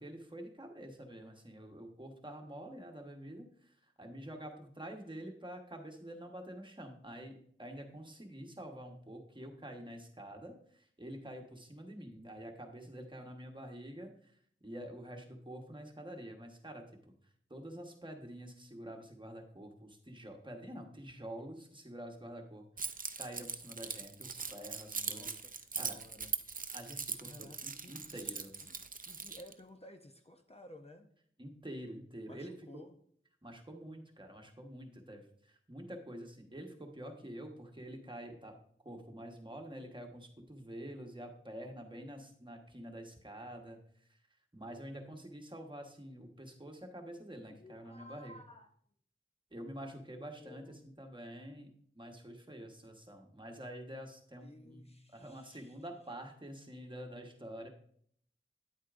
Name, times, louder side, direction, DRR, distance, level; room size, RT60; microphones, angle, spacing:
voice 1, 0.0-17.1 17.5-25.3 25.8-26.0 26.7-28.5 31.4-32.8 33.4-38.6 38.8-43.8 44.1-44.2 44.5-48.4 49.5-57.7, right 1 dB, 25° right, 3 dB, 1.2 m, -47 dB
Keys jangling, 22.8-29.5, right 5 dB, 40° right, 0.4 m, -41 dB
voice 2, 24.9-26.3 27.2-28.8 29.0-31.1 32.3-33.0 47.5-48.7 49.9-50.1 50.4-50.8 54.4-55.8, left 1 dB, 30° left, 5 dB, 0.6 m, -55 dB
8.9 x 8.2 x 2.5 m, 0.63 s
wide cardioid pair, 70°, 21 cm